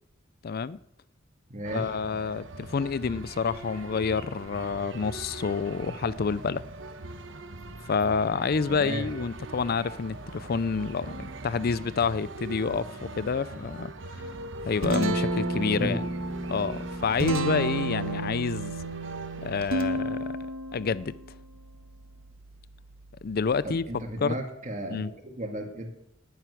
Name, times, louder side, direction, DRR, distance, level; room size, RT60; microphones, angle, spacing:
voice 1, 0.4-0.8 1.7-6.6 7.9-13.9 14.7-16.0 16.5-18.7 19.4-20.4 20.7-21.1 23.2-23.8 24.2-24.3 24.9-25.1, left 5 dB, 50° left, 18 dB, 0.4 m, -28 dB
voice 2, 1.5-1.9 8.7-9.1 15.8-16.0 23.6-25.9, equal, 40° right, 2 dB, 2.1 m, -34 dB
sound 1, 1.6-20.0, right 2 dB, 65° right, 1.1 m, -41 dB
Guitar, 14.4-24.1, right 2 dB, 80° right, 1.5 m, -32 dB
9.6 x 9.2 x 9.7 m, 0.82 s
head